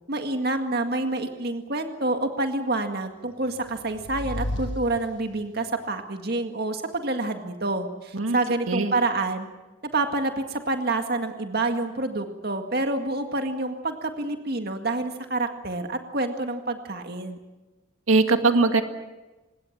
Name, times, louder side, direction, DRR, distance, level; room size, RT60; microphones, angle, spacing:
voice 1, 0.1-9.5 9.9-17.4, right 2 dB, 50° right, 5 dB, 2.0 m, -28 dB
sound 1, 3.3-5.7, left 1 dB, 60° left, 1.3 m, -34 dB
voice 2, 18.1-18.8, right 3 dB, 90° right, 6 dB, 2.1 m, -20 dB
26.0 x 21.0 x 7.4 m, 1.1 s
head